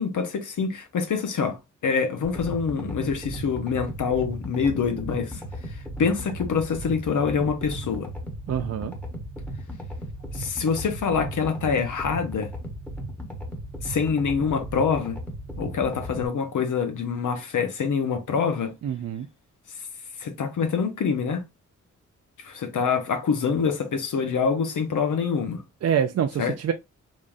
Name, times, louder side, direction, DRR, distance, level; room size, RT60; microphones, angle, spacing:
voice 1, 0.0-1.6 1.8-8.1 10.3-12.5 13.8-15.2 15.6-18.7 20.2-21.4 22.4-25.6 26.4-26.6, left 6 dB, 75° left, 1.0 m, -25 dB
sound 1, 2.2-16.3, equal, 5° left, 1.1 m, -36 dB
voice 2, 8.5-8.9 18.8-19.3 25.8-26.7, right 8 dB, 55° right, 0.4 m, -25 dB
5.2 x 3.6 x 2.5 m
wide cardioid pair, 175°, 31 cm